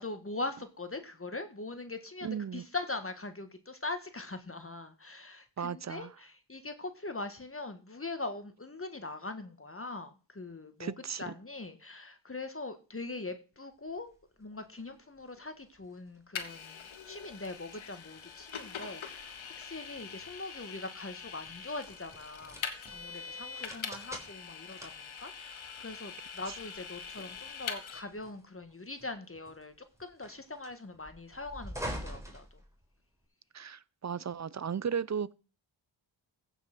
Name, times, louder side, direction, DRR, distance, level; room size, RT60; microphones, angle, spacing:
voice 1, 0.0-14.1 14.4-22.6 22.9-32.6, left 3 dB, 25° left, 1.6 m, -42 dB
voice 2, 2.2-2.6 5.6-6.1 10.8-11.2 33.5-35.3, right 7 dB, 35° right, 0.5 m, -35 dB
sound 1, 13.9-33.2, equal, 5° right, 3.7 m, -49 dB
Vehicle, 16.4-28.0, left 6 dB, 75° left, 1.7 m, -43 dB
15.5 x 5.7 x 6.0 m
cardioid pair, 55°, 48 cm